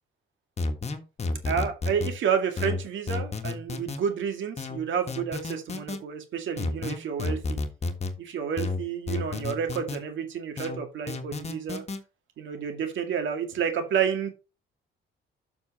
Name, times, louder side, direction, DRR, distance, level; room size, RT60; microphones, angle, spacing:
sound 1, 0.6-2.1 2.6-4.0 4.6-6.0 6.6-8.1 8.6-10.0 10.6-12.0, left 3 dB, 35° left, 1.5 m, -31 dB
voice 1, 1.4-7.6 8.2-11.8 12.4-14.3, right 7 dB, 75° right, 6 dB, 2.1 m, -30 dB
7.1 x 6.1 x 4.2 m, 0.30 s
cardioid pair, 90°, 20 cm